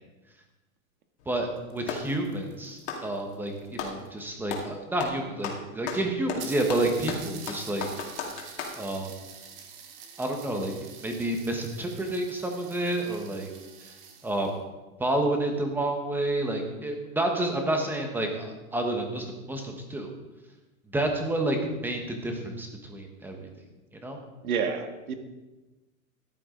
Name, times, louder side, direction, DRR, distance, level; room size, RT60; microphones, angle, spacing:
Clapping, 1.2-2.1 2.8-4.0 4.5-4.7 5.0-8.8, left 6 dB, 50° left, 2.3 m, -35 dB
sound 1, 1.4-4.2 5.1-5.2 5.4-5.5 5.8-5.9 6.4-14.6, right 7 dB, 50° right, 2.0 m, -46 dB
voice 1, 1.7-7.9 8.8-9.1 10.2-10.7 11.0-13.5 14.2-14.5 15.0-20.1 20.9-21.6 21.8-23.5 24.0-24.2, right 1 dB, 5° right, 3 dB, 1.2 m, -29 dB
voice 2, 24.4-25.1, right 6 dB, 75° right, 7 dB, 1.7 m, -29 dB
14.5 x 11.5 x 3.8 m, 1.1 s
supercardioid pair, 155°, 43 cm